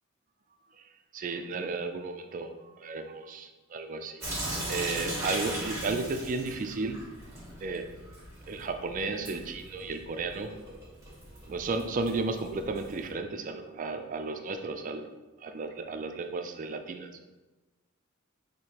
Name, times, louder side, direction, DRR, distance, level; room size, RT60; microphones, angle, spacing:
voice 1, 1.1-4.2 4.7-7.1 7.6-7.9 8.5-10.5 11.5-15.1 15.4-17.2, right 3 dB, 40° right, 7 dB, 0.4 m, -34 dB
Sink (filling or washing) / Drip, 4.2-13.1, right 1 dB, 15° right, 1.3 m, -39 dB
6.1 x 2.8 x 2.9 m, 1.1 s
head